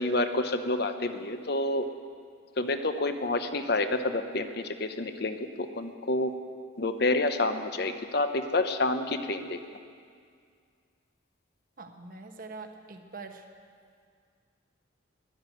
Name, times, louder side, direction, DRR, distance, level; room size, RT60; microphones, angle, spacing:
voice 1, 0.0-1.9 2.6-6.3 6.8-9.6, left 2 dB, 50° left, 8 dB, 0.8 m, -28 dB
voice 2, 11.8-13.5, right 3 dB, 45° right, 5 dB, 1.1 m, -44 dB
12.5 x 11.0 x 9.2 m, 2.1 s
head